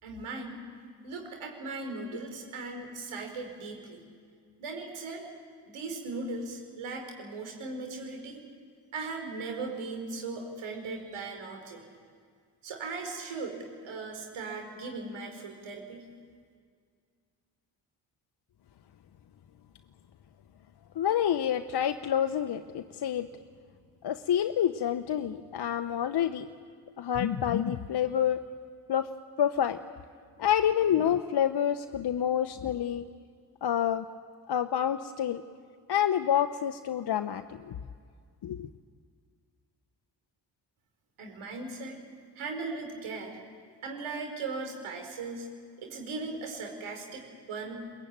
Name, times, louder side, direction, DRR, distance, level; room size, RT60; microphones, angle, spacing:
voice 1, 0.0-0.6 1.0-4.0 4.6-5.3 5.7-8.4 8.9-11.8 12.6-13.6 13.8-16.1 41.2-42.0 42.3-43.4 43.8-45.5 45.8-47.9, right 3 dB, 75° right, 3 dB, 4.6 m, -38 dB
voice 2, 20.9-23.3 24.0-26.5 27.0-28.4 28.9-29.1 29.4-29.8 30.4-33.1 33.6-34.0 34.5-35.4 35.9-37.8 38.4-38.7, left 9 dB, 50° left, 8 dB, 1.0 m, -28 dB
22.0 x 20.5 x 9.0 m, 2.1 s
hypercardioid pair, 45°, 50 cm